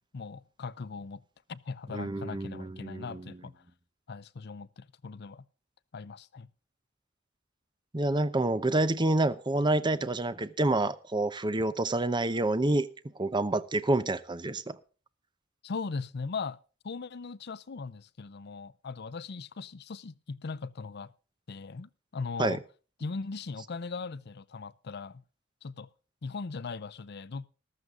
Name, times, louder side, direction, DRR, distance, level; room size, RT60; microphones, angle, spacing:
voice 1, 0.1-1.2 1.5-3.6 4.1-5.4 5.9-6.5 15.6-16.6 16.8-21.1 21.5-22.6 23.0-25.2 25.6-25.9 26.2-27.5, left 4 dB, 55° left, 0.6 m, -39 dB
voice 2, 1.9-3.3 7.9-12.9 13.2-14.8 22.4-22.6, right 2 dB, 25° right, 0.7 m, -28 dB
14.5 x 12.5 x 3.7 m
head